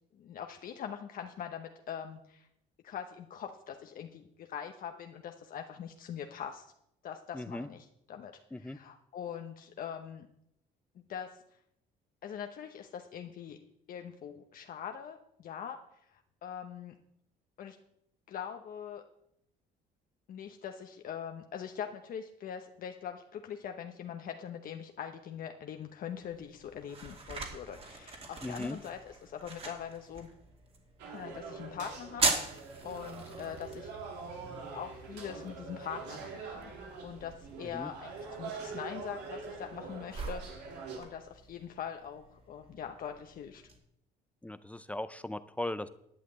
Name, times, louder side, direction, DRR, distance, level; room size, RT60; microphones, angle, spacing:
voice 1, 0.1-2.5 2.8-6.7 7.0-10.3 11.0-11.4 12.2-13.6 13.9-15.8 16.1-17.0 17.6-17.8 18.3-19.0 20.3-30.3 31.1-32.2 32.8-33.9 34.7-36.7 37.0-40.7 41.0-43.6, left 8 dB, 55° left, 5 dB, 0.9 m, -42 dB
voice 2, 7.3-7.7 8.5-8.8 28.4-28.8 37.7-37.9 44.4-45.9, left 1 dB, 10° left, 13 dB, 0.5 m, -38 dB
sound 1, 26.2-43.8, right 3 dB, 35° right, 2.3 m, -41 dB
sound 2, 31.0-41.0, right 4 dB, 90° right, 2.8 m, -44 dB
11.0 x 5.9 x 8.7 m, 0.76 s
cardioid pair, 110°, 17 cm